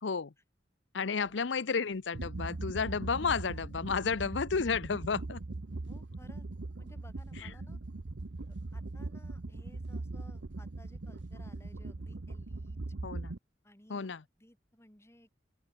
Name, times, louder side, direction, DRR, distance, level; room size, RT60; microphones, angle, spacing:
voice 1, 0.0-0.3 0.9-5.4 7.4-7.5 13.0-13.4 13.9-14.2, left 5 dB, 85° left, 0.7 m, -32 dB
voice 2, 1.1-1.4 5.9-6.4 6.8-7.8 8.5-12.8 13.6-14.1 14.4-15.3, left 1 dB, 15° left, 4.6 m, -59 dB
sound 1, 1.2-11.8, right 1 dB, 70° right, 6.0 m, -71 dB
sound 2, 2.1-13.4, right 2 dB, 90° right, 0.9 m, -40 dB
open air
head